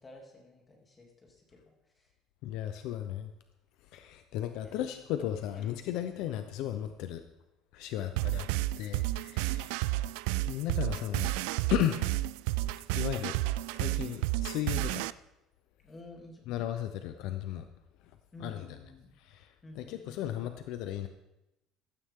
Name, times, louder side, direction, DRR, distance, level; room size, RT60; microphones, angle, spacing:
voice 1, 0.0-2.1 4.6-4.9 5.5-5.8 8.0-8.3 9.3-9.7 15.8-16.5 18.3-19.1 19.6-20.2, left 1 dB, 15° left, 0 dB, 3.0 m, -52 dB
voice 2, 2.4-3.3 3.9-7.2 7.7-8.5 8.8-10.1 10.5-11.3 11.7-12.1 12.7-13.3 13.7-15.1 16.5-17.7 18.4-18.7 19.2-21.1, left 12 dB, 65° left, 8 dB, 0.8 m, -35 dB
sound 1, 8.2-15.1, right 17 dB, 90° right, 0.3 m, -31 dB
15.5 x 12.5 x 3.8 m, 0.91 s
cardioid pair, 155°, 0 cm